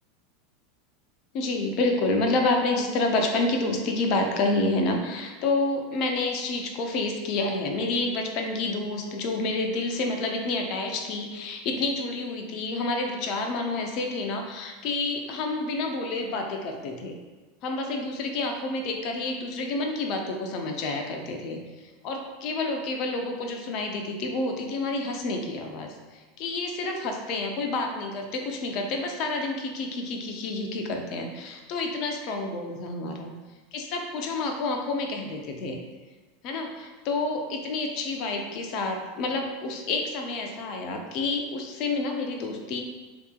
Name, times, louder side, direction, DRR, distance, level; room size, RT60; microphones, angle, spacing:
voice 1, 1.3-17.1 17.6-21.6 22.0-33.3 33.7-35.8 36.4-42.8, left 2 dB, 50° left, 3 dB, 0.7 m, -29 dB
6.8 x 2.9 x 2.4 m, 1.3 s
figure-of-eight pair, 85°, 0 cm